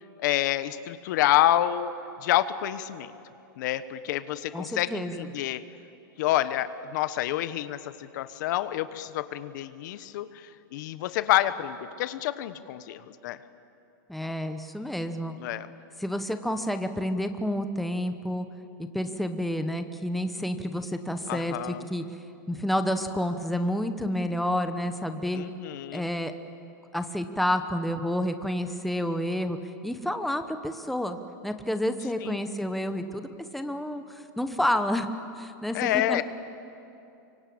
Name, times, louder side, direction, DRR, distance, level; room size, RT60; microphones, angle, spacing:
voice 1, 0.2-1.9 2.2-3.1 3.6-5.6 6.2-13.4 15.4-15.7 21.3-21.8 25.3-26.1 32.2-32.4 35.7-36.2, left 13 dB, 60° left, 13 dB, 1.1 m, -28 dB
voice 2, 4.5-5.3 14.1-15.3 16.0-18.5 18.8-22.0 22.5-25.4 25.9-26.3 26.9-29.6 29.8-35.1 35.3-36.2, left 1 dB, ahead, 8 dB, 1.0 m, -29 dB
25.5 x 24.5 x 8.7 m, 2.7 s
supercardioid pair, 145°, 11 cm